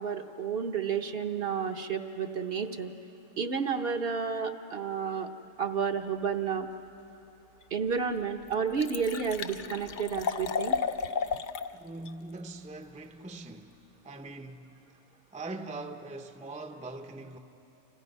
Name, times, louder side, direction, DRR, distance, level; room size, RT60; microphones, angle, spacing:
voice 1, 0.0-2.9 3.4-5.3 5.6-6.7 7.7-10.8, right 6 dB, 50° right, 1.0 m, -31 dB
Liquid, 7.6-7.7 8.2-8.3 8.5-11.7 12.1-12.2, left 5 dB, 50° left, 0.6 m, -33 dB
voice 2, 11.7-13.7 14.0-14.7 15.3-17.4, right 2 dB, 10° right, 0.6 m, -42 dB
29.0 x 27.0 x 5.4 m
omnidirectional pair, 1.3 m